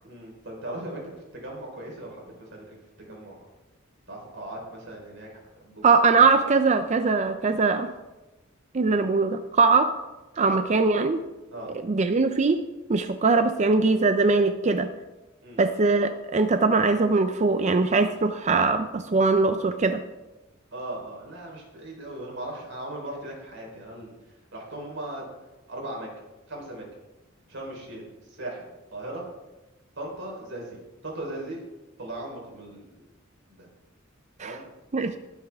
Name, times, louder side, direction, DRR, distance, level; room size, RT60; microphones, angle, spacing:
voice 1, 0.0-2.8 3.1-3.4 4.1-5.4 5.6-6.0 8.8-9.0 10.4-10.6 11.5-11.7 15.4-15.6 20.7-24.1 24.5-25.2 25.7-26.1 26.5-26.8 27.5-28.0 28.4-28.6 28.9-29.2 30.0-31.6 32.0-33.0 33.6-33.7 34.4-34.6, right 1 dB, 65° right, -1 dB, 4.1 m, -38 dB
voice 2, 5.8-7.9 8.7-9.9 10.4-11.2 11.8-12.6 12.9-14.9 15.6-20.0 34.4-34.6 34.9-35.2, right 4 dB, 35° right, 9 dB, 0.5 m, -21 dB
18.5 x 8.1 x 3.6 m, 1.1 s
head